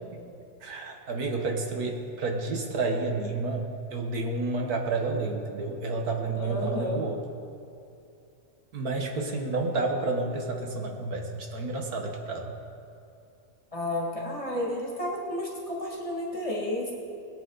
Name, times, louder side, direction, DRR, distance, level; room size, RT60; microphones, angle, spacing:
voice 1, 0.6-7.2 8.7-12.5, right 3 dB, 75° right, 2 dB, 1.9 m, -30 dB
voice 2, 6.3-7.0 13.7-16.9, left 1 dB, 20° left, -4 dB, 2.4 m, -31 dB
21.0 x 9.2 x 4.1 m, 2.7 s
omnidirectional pair, 1.6 m